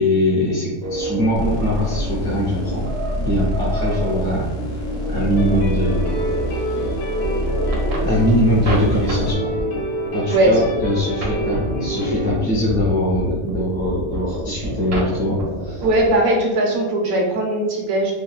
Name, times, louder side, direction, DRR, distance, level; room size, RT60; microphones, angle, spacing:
voice 1, 0.0-2.8 3.2-4.5 5.1-6.2 6.5-6.9 8.0-9.5 10.1-15.9, left 1 dB, 50° left, -6 dB, 0.8 m, -22 dB
sound 1, 0.8-16.2, right 1 dB, 55° right, 0.7 m, -29 dB
sound 2, 1.3-9.3, equal, 65° left, 1.0 m, -26 dB
sound 3, 5.3-12.4, right 1 dB, 85° left, 1.2 m, -27 dB
voice 2, 15.8-18.1, right 1 dB, 85° right, 0 dB, 1.1 m, -19 dB
3.3 x 2.2 x 2.3 m, 1.1 s
omnidirectional pair, 1.5 m